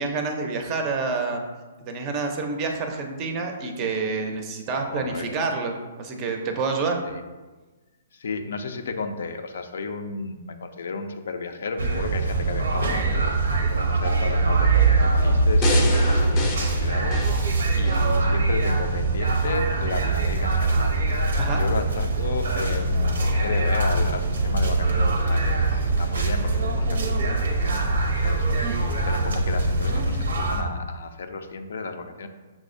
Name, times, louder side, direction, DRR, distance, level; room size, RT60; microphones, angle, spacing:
voice 1, 0.0-1.4 1.8-7.0 21.4-21.6, right 4 dB, 30° right, 3 dB, 0.5 m, -28 dB
voice 2, 4.9-5.3 7.1-7.2 8.1-13.3 13.7-21.0 21.2-32.3, left 4 dB, 75° left, 7 dB, 0.3 m, -33 dB
sound 1, 11.8-30.6, right 2 dB, 80° right, 0.6 m, -22 dB
sound 2, 15.6-18.1 18.6-18.7, left 1 dB, 20° left, 0.5 m, -29 dB
5.9 x 2.0 x 2.5 m, 1.2 s
hypercardioid pair, 150°, 0 cm